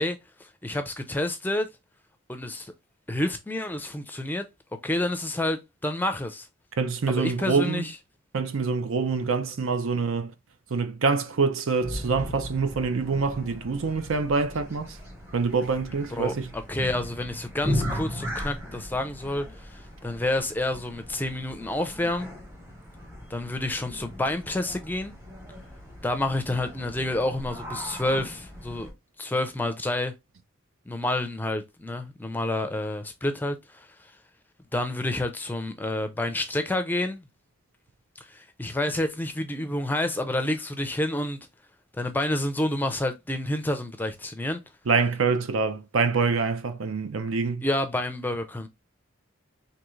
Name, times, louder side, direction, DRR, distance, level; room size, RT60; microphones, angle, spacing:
voice 1, 0.0-1.7 2.3-2.7 3.1-4.4 4.8-6.5 7.1-8.0 16.1-22.3 23.3-25.2 26.0-28.9 29.2-30.1 30.9-34.1 34.7-37.3 38.2-41.5 42.0-44.6 47.6-48.7, left 1 dB, 10° left, 0.4 m, -29 dB
voice 2, 6.8-7.9 8.3-10.3 10.7-14.9 15.3-16.5 44.9-47.6, right 4 dB, 80° right, 0.6 m, -25 dB
sound 1, 11.8-28.9, equal, 10° right, 0.9 m, -37 dB
3.7 x 2.8 x 3.1 m
head